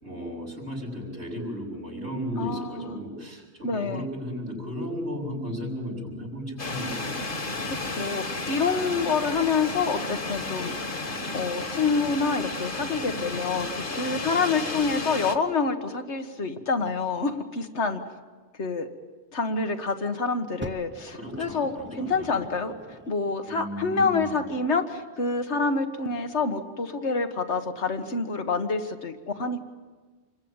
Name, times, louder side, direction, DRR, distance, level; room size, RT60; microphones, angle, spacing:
voice 1, 0.0-7.1 8.8-9.1 21.1-22.4 23.4-24.5, equal, 80° right, -7 dB, 6.4 m, -35 dB
voice 2, 2.4-3.0 3.6-4.0 7.7-10.7 11.3-18.0 18.6-18.9 19.3-21.7 22.0-22.7 23.1-29.6, left 4 dB, 85° left, 7 dB, 1.9 m, -27 dB
sound 1, 6.6-15.4, left 2 dB, 50° left, 1.8 m, -33 dB
Fire, 20.6-23.4 24.2-24.3, right 1 dB, 10° right, 0.8 m, -43 dB
28.5 x 22.0 x 8.9 m, 1.4 s
omnidirectional pair, 1.1 m